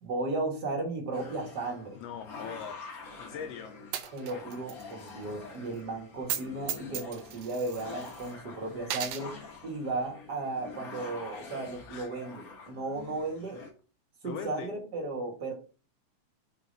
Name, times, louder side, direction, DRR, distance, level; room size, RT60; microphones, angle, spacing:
voice 1, 0.0-2.0 4.1-9.3 9.6-13.6 14.2-15.5, right 2 dB, 45° right, 1.5 m, -35 dB
sound 1, 1.1-13.7, left 4 dB, 50° left, 1.0 m, -46 dB
voice 2, 2.0-2.9 3.2-3.7 11.9-12.1 13.5-13.6 14.2-14.7, left 7 dB, 80° left, 1.5 m, -41 dB
Coin (dropping), 3.9-4.8 5.1-5.2 6.2-6.4 6.7-8.3 8.8-9.3, right 9 dB, 75° right, 1.6 m, -35 dB
4.9 x 4.0 x 5.1 m
omnidirectional pair, 3.4 m